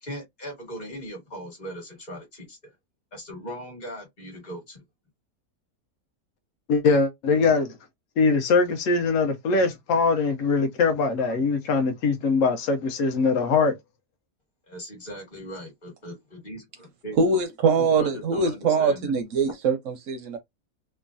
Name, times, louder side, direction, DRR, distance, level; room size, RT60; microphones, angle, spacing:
voice 1, 0.0-2.6 3.1-4.8 14.7-17.2 17.7-19.1 19.5-19.6, equal, 30° left, 1.4 m, -39 dB
voice 2, 6.7-7.7 8.2-13.7, left 4 dB, 65° left, 1.0 m, -22 dB
voice 3, 17.2-20.4, right 4 dB, 70° right, 0.8 m, -23 dB
3.0 x 2.3 x 2.4 m
omnidirectional pair, 1.6 m